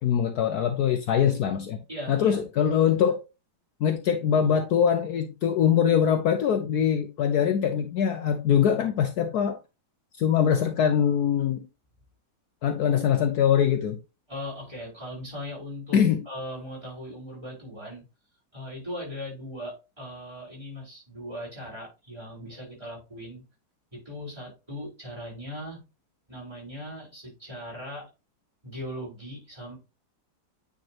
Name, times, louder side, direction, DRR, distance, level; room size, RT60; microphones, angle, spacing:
voice 1, 0.0-1.8 2.1-3.2 3.8-9.6 10.2-11.6 12.6-14.0 15.9-16.2, left 8 dB, 70° left, 1.1 m, -23 dB
voice 2, 1.9-2.4 14.3-16.0 16.2-18.0 18.5-23.4 23.9-25.8 26.3-28.1 28.6-29.8, equal, 15° right, 4.6 m, -39 dB
9.0 x 4.2 x 2.9 m
omnidirectional pair, 1.9 m